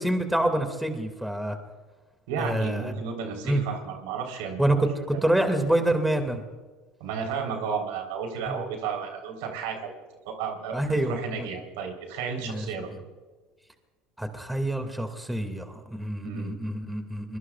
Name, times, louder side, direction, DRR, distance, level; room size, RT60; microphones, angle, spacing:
voice 1, 0.0-1.6 2.4-2.9 3.4-3.6 4.6-6.4 8.5-8.6 10.7-11.5 12.5-12.7 12.9-13.0 14.2-17.4, right 1 dB, 5° right, 6 dB, 2.2 m, -27 dB
voice 2, 2.3-4.7 5.1-5.3 7.0-9.9 10.3-12.9 16.2-16.5, right 6 dB, 80° right, 2 dB, 3.8 m, -33 dB
25.0 x 21.5 x 2.4 m, 1.3 s
supercardioid pair, 90°, 0 cm